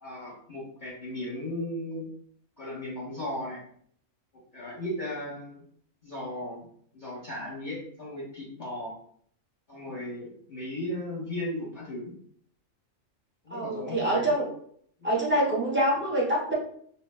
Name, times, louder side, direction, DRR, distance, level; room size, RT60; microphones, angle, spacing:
voice 1, 0.0-2.1 2.6-3.6 4.5-5.6 6.0-6.7 6.9-8.9 9.7-12.1 13.4-14.3, left 1 dB, 40° left, -7 dB, 0.8 m, -36 dB
voice 2, 13.5-14.5 15.0-16.5, right 1 dB, 15° right, -4 dB, 0.5 m, -25 dB
2.9 x 2.0 x 3.2 m, 0.63 s
omnidirectional pair, 1.4 m